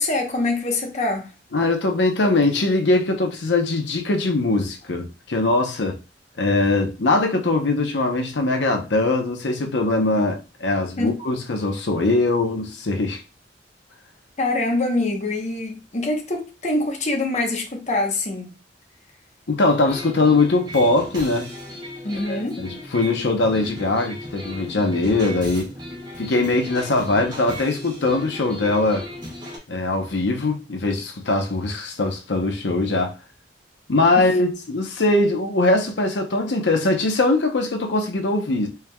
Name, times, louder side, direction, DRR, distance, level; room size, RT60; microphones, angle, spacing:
voice 1, 0.0-1.3 11.0-11.2 14.4-18.5 22.0-22.6 34.2-34.3, left 2 dB, 40° left, 0.9 m, -24 dB
voice 2, 1.5-6.0 6.4-13.2 19.5-21.5 22.3-25.7 26.2-29.1 29.7-33.1 33.9-38.7, left 2 dB, 80° left, 0.8 m, -21 dB
sound 1, 19.9-29.6, equal, 25° right, 1.3 m, -37 dB
4.5 x 3.5 x 2.2 m
head